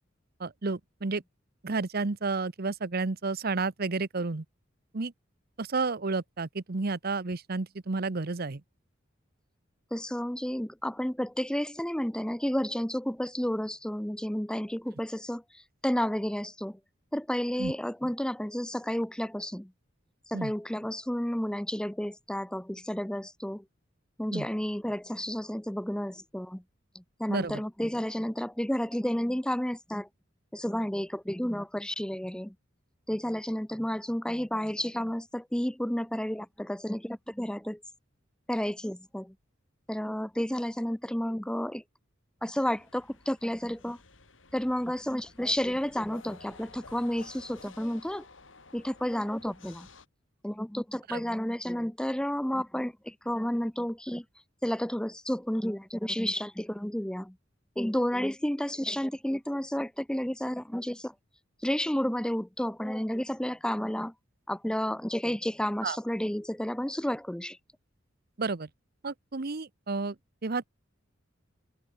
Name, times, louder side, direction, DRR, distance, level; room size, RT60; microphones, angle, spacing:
voice 1, 0.4-1.2 1.6-4.4 4.9-5.1 5.6-8.6 17.6-17.7 20.3-20.5 24.3-24.5 27.3-27.6 51.1-51.2 65.8-66.0 68.4-68.7 69.0-70.2 70.4-70.6, right 3 dB, 55° right, 0.9 m, -31 dB
voice 2, 9.9-16.8 17.1-19.7 20.3-23.6 24.2-26.6 26.9-30.1 30.5-32.5 33.1-37.8 38.5-39.3 39.9-41.8 42.4-44.0 44.5-48.2 48.7-49.9 50.4-54.2 54.6-57.4 57.8-61.1 61.6-64.1 64.5-67.6, equal, 5° left, 0.7 m, -31 dB
sound 1, 42.8-50.1, left 3 dB, 80° left, 4.4 m, -53 dB
head